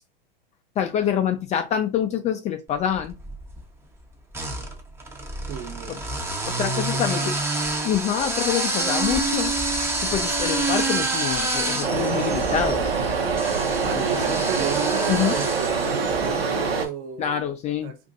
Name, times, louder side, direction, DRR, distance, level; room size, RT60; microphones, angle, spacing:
voice 1, 0.8-3.1 5.9-6.0 6.5-7.2 7.8-9.5 10.0-12.9 13.9-14.0 15.1-15.4 17.2-17.9, left 9 dB, 25° left, 0.4 m, -26 dB
sound 1, 2.9-3.6 4.3-16.6, right 2 dB, 10° right, 0.7 m, -28 dB
voice 2, 5.5-6.0 6.6-7.4 13.8-17.5 17.8-18.0, right 8 dB, 40° right, 0.9 m, -34 dB
sound 2, 11.8-16.9, right 5 dB, 90° right, 0.9 m, -25 dB
2.6 x 2.5 x 3.9 m
hypercardioid pair, 105°, 29 cm